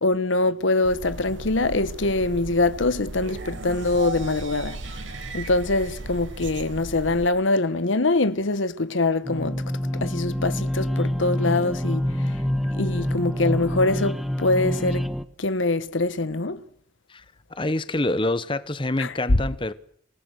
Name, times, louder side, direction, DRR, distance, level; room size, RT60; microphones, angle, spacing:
voice 1, 0.0-4.8 5.3-9.6 9.9-12.3 12.7-15.0 15.4-16.6 19.0-19.1, left 2 dB, 80° left, 1.1 m, -24 dB
sound 1, 0.8-7.3, right 2 dB, 70° right, 1.0 m, -37 dB
sound 2, 3.2-7.2, right 3 dB, 85° right, 5.0 m, -39 dB
sound 3, 9.2-15.2, equal, ahead, 1.1 m, -26 dB
voice 2, 17.5-19.7, left 2 dB, 25° left, 1.0 m, -26 dB
26.5 x 19.0 x 6.4 m
head